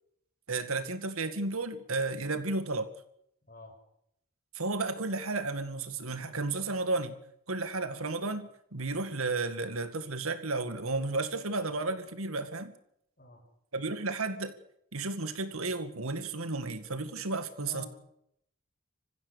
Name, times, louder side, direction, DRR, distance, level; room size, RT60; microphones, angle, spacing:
voice 1, 0.5-2.9 4.5-7.1 7.5-12.7 13.7-14.6 14.9-17.9, right 3 dB, 80° right, 10 dB, 2.0 m, -33 dB
voice 2, 3.5-3.7 13.2-13.4 17.6-17.9, left 1 dB, 40° left, 3 dB, 6.0 m, -46 dB
26.0 x 15.5 x 7.0 m, 0.74 s
head